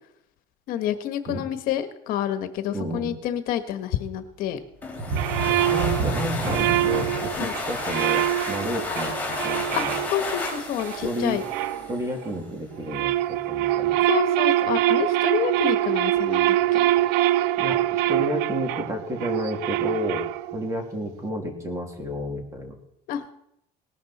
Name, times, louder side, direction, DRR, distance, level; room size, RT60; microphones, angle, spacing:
voice 1, 0.7-4.6 7.4-7.5 9.7-9.8 10.1-11.4 14.1-16.6 23.1-23.3, left 10 dB, 60° left, 9 dB, 1.3 m, -28 dB
voice 2, 2.7-3.1 5.5-9.9 11.0-11.4 11.9-14.0 17.6-22.7, equal, 20° right, 3 dB, 2.7 m, -31 dB
sound 1, 4.8-12.3, left 3 dB, 10° left, 3.6 m, -32 dB
sound 2, 4.9-10.4 10.8-11.0 11.5-11.6, right 3 dB, 35° right, 7.2 m, -31 dB
sound 3, 5.1-12.4 12.7-20.7, right 14 dB, 80° right, 0.6 m, -24 dB
18.5 x 12.5 x 4.2 m, 0.75 s
cardioid pair, 160°, 16 cm